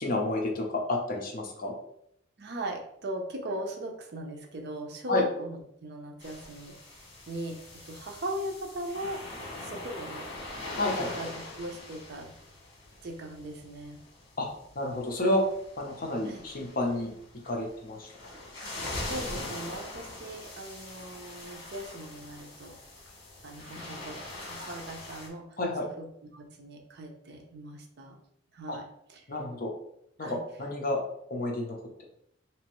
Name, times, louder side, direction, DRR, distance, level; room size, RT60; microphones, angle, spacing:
voice 1, 0.0-1.7 5.1-5.2 10.8-11.1 14.4-14.5 14.7-15.4 15.8-17.1 17.4-18.1 25.6-25.9 28.7-28.8 29.3-29.7 30.2-31.0 31.3-31.8, left 1 dB, 45° left, 0 dB, 0.7 m, -30 dB
voice 2, 2.4-9.2 9.6-10.3 10.6-10.8 11.1-12.3 13.0-14.0 16.3-16.4 18.6-18.7 19.1-22.8 23.4-28.2 28.5-29.2 30.2-30.4, right 1 dB, 55° right, 3 dB, 0.6 m, -39 dB
sound 1, 6.2-25.3, left 2 dB, 65° left, 1.3 m, -42 dB
3.3 x 2.9 x 3.0 m, 0.73 s
head